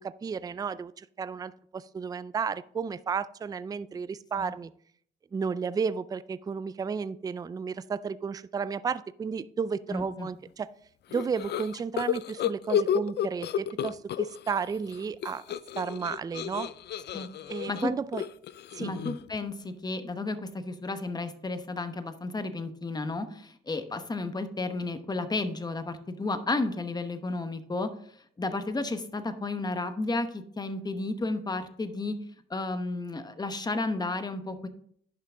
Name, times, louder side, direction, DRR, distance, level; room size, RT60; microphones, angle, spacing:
voice 1, 0.0-4.7 5.3-10.7 11.1-15.4 15.8-16.7 17.5-18.3 18.7-18.9, right 6 dB, 20° right, 16 dB, 0.3 m, -33 dB
voice 2, 9.9-10.3 17.1-17.3 17.7-17.9 18.8-27.9 28.4-32.2 32.5-34.7, left 2 dB, 20° left, 9 dB, 1.0 m, -32 dB
sound 1, 11.1-14.6 14.9-19.4, left 10 dB, 60° left, 0.4 m, -31 dB
10.5 x 5.8 x 3.7 m, 0.63 s
cardioid pair, 90°, 20 cm